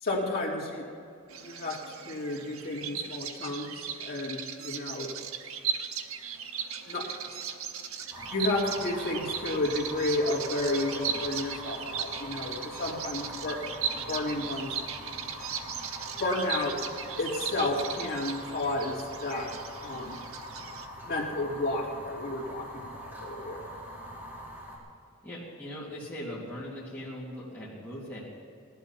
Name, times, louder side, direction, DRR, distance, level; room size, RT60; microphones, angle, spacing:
voice 1, 0.0-0.8 1.4-5.1 6.9-7.1 8.3-13.6 13.9-14.7 16.2-16.8 17.2-19.5 19.8-20.2 21.0-23.7, left 2 dB, 50° left, -2 dB, 2.8 m, -32 dB
Bird vocalization bird call bird song, 1.3-20.9, right 7 dB, 85° right, 1.1 m, -37 dB
Fire, 8.1-24.8, equal, 10° right, 4.3 m, -43 dB
voice 2, 25.2-28.2, equal, 10° left, -8 dB, 3.1 m, -40 dB
18.5 x 12.0 x 5.9 m, 2.5 s
head